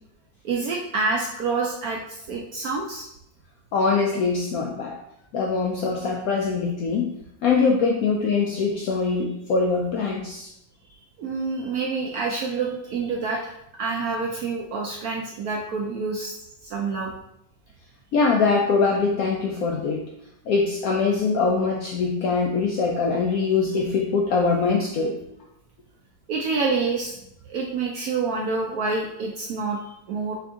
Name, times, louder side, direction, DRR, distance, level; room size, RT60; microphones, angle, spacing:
voice 1, 0.4-3.1 11.2-13.5 13.8-17.1 26.3-27.2 27.5-30.4, right 4 dB, 75° right, -1 dB, 0.8 m, -27 dB
voice 2, 3.7-5.0 5.3-7.1 7.4-10.5 18.1-20.0 20.5-25.1, left 4 dB, 75° left, -1 dB, 0.8 m, -23 dB
3.8 x 3.4 x 3.5 m, 0.78 s
omnidirectional pair, 2.0 m